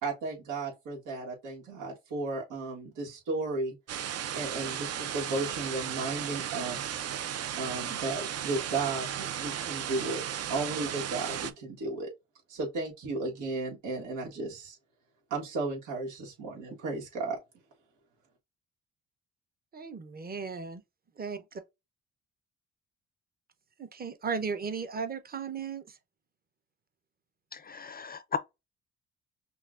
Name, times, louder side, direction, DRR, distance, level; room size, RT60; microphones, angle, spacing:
voice 1, 0.0-3.8 4.3-7.0 7.6-10.2 10.5-12.1 12.5-14.8 15.3-17.4, right 3 dB, 85° right, 1.6 m, -34 dB
sound 1, 3.9-11.5, right 10 dB, 55° right, 0.6 m, -35 dB
voice 2, 19.7-20.8 21.2-21.4 23.8-26.0, right 5 dB, 30° right, 0.8 m, -36 dB
voice 3, 27.5-28.4, left 6 dB, 30° left, 0.4 m, -35 dB
5.7 x 2.4 x 2.5 m
cardioid pair, 90°, 30 cm